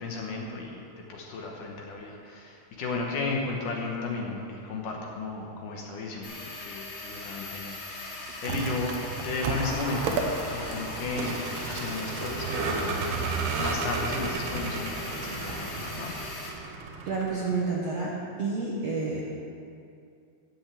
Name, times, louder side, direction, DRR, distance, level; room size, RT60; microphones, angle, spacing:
voice 1, 0.0-9.0 9.2-10.2 10.5-16.2, left 3 dB, 65° left, -1 dB, 2.4 m, -34 dB
sound 1, 6.2-16.5, left 2 dB, 45° left, 3.3 m, -40 dB
Vehicle, 8.3-17.7, right 4 dB, 90° right, 3.1 m, -33 dB
sound 2, 9.4-16.0, equal, 40° right, 3.8 m, -40 dB
voice 2, 17.0-19.2, right 4 dB, 65° right, -5 dB, 1.7 m, -29 dB
13.5 x 6.3 x 8.5 m, 2.5 s
omnidirectional pair, 4.6 m